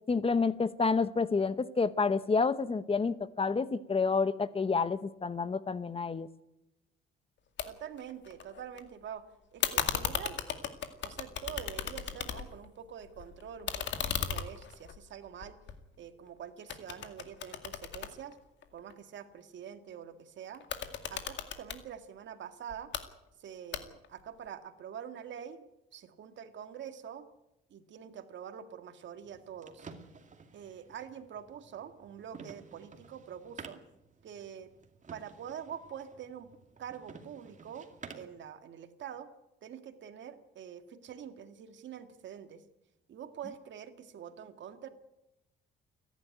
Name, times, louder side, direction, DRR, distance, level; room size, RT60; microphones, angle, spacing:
voice 1, 0.1-6.3, left 4 dB, 30° left, 15 dB, 1.0 m, -29 dB
sound 1, 7.6-7.7 8.0-8.8 9.6-12.7 13.0-16.3 16.7-18.9 20.5-21.8 22.7-23.0 23.7-24.2, left 8 dB, 65° left, 2.2 m, -36 dB
voice 2, 7.7-10.4 11.0-13.8 14.3-15.6 16.0-18.4 18.7-20.7 21.1-22.9 23.4-25.7 25.9-27.3 27.7-29.9 30.5-33.8 34.2-34.7 35.1-36.5 36.8-37.9 38.1-39.3 39.6-42.6 43.1-44.9, right 8 dB, 70° right, 8 dB, 1.9 m, -45 dB
sound 2, 29.2-38.4, right 5 dB, 40° right, 2.4 m, -52 dB
29.5 x 11.5 x 9.3 m, 0.92 s
cardioid pair, 90°, 20 cm